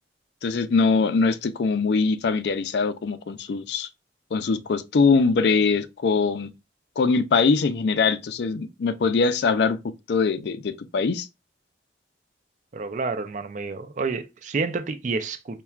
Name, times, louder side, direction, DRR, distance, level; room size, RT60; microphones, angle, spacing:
voice 1, 0.4-3.9 4.3-6.5 7.0-9.8 10.1-11.3, left 4 dB, 65° left, 0.4 m, -22 dB
voice 2, 12.7-15.6, right 4 dB, 40° right, 0.4 m, -29 dB
5.6 x 2.2 x 2.3 m
head